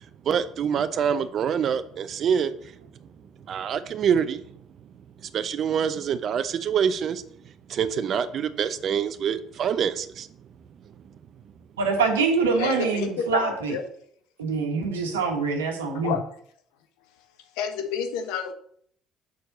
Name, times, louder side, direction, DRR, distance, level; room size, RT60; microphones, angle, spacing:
voice 1, 0.2-2.7 3.5-4.4 5.3-7.2 7.7-10.3, right 7 dB, 55° right, 0.8 m, -25 dB
voice 2, 11.8-13.7 14.4-16.1, right 4 dB, 90° right, 1.4 m, -24 dB
voice 3, 12.6-13.8 15.9-16.3 17.5-18.5, left 7 dB, 75° left, 1.0 m, -29 dB
6.6 x 4.5 x 6.7 m
hypercardioid pair, 55°, 0 cm